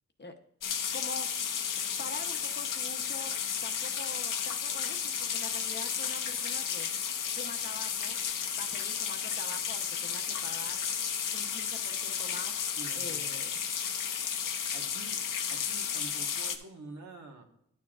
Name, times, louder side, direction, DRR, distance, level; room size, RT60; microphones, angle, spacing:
sound 1, 0.6-16.6, left 7 dB, 80° left, 0.7 m, -33 dB
voice 1, 0.9-1.3 2.0-3.4 3.6-6.9 7.3-8.2 8.6-10.9 11.3-12.7 13.0-13.5, left 3 dB, 35° left, 5 dB, 0.8 m, -44 dB
voice 2, 12.8-13.3 14.7-15.2 15.5-17.4, right 3 dB, 60° right, 3 dB, 1.4 m, -47 dB
11.5 x 7.0 x 2.4 m, 0.74 s
wide cardioid pair, 100°, 32 cm